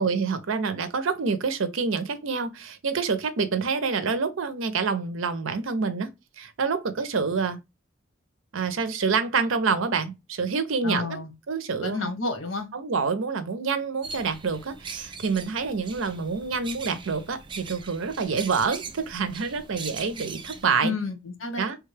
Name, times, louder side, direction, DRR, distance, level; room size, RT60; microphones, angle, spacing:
voice 1, 0.0-6.1 6.4-7.6 8.5-11.2 11.5-12.1 12.7-20.9 21.6-21.8, right 5 dB, 90° right, 0.6 m, -27 dB
voice 2, 10.8-11.3 11.8-12.7 20.8-21.6, left 3 dB, 85° left, 1.0 m, -30 dB
sound 1, 14.0-20.6, right 4 dB, 25° right, 0.4 m, -41 dB
3.4 x 2.3 x 3.2 m
head